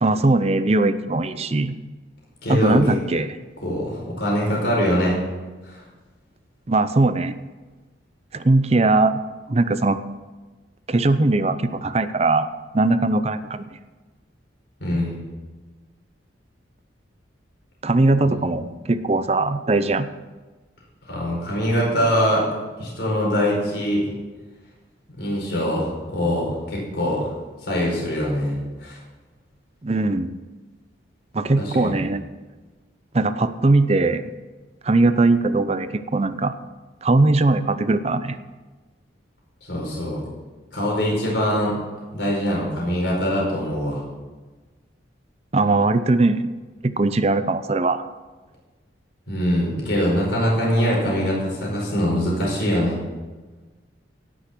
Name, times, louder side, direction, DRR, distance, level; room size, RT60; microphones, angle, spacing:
voice 1, 0.0-1.8 2.5-3.4 6.7-7.3 8.3-9.2 9.5-10.0 10.9-12.5 12.7-13.7 17.8-20.1 29.8-30.3 31.3-32.2 33.1-34.3 34.8-36.5 37.0-38.4 45.5-46.5 46.8-48.1, right 2 dB, 35° right, 12 dB, 0.5 m, -20 dB
voice 2, 2.4-3.0 3.6-5.2 5.6-5.8 14.8-15.2 18.2-18.4 21.1-22.4 22.8-24.0 25.2-27.3 27.6-29.0 31.6-31.9 39.6-40.2 40.7-41.7 42.1-44.0 49.3-53.0, equal, 65° left, -3 dB, 4.9 m, -23 dB
17.5 x 6.3 x 6.0 m, 1.3 s
head